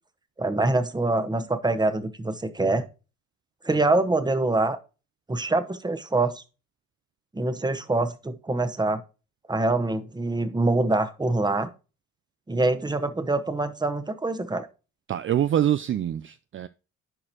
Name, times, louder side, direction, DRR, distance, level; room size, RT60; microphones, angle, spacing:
voice 1, 0.4-2.9 3.6-4.8 5.3-6.4 7.3-9.0 9.5-11.7 12.5-14.7, right 2 dB, 15° right, 1.1 m, -25 dB
voice 2, 15.1-16.7, right 10 dB, 45° right, 0.4 m, -25 dB
11.0 x 4.9 x 2.9 m
cardioid pair, 90°, 30 cm